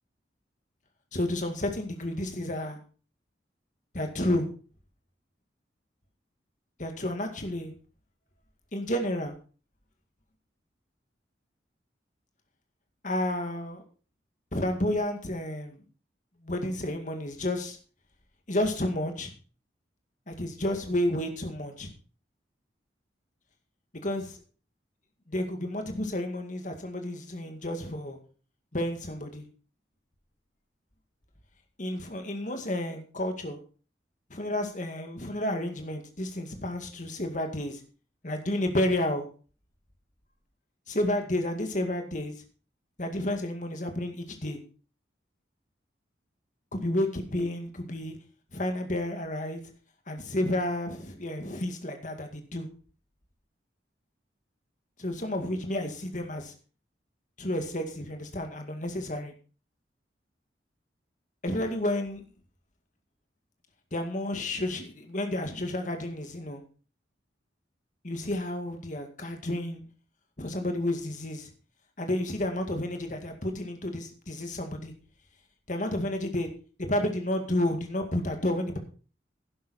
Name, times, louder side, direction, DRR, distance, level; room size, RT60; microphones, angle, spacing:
voice 1, 1.1-2.8 3.9-4.5 6.8-7.7 8.7-9.3 13.0-13.8 14.5-15.8 16.4-17.8 18.5-19.3 20.3-21.9 24.0-24.4 25.3-28.2 28.7-29.5 31.8-33.6 34.3-37.8 38.2-39.3 40.9-42.3 43.0-44.6 46.7-48.2 48.5-49.6 50.1-52.7 55.0-56.5 57.4-59.3 61.4-62.2 63.9-66.6 68.0-69.8 70.4-71.5 72.0-74.9 75.7-76.5 76.9-78.8, left 1 dB, 45° left, 5 dB, 2.1 m, -31 dB
11.5 x 11.5 x 4.3 m, 0.38 s
head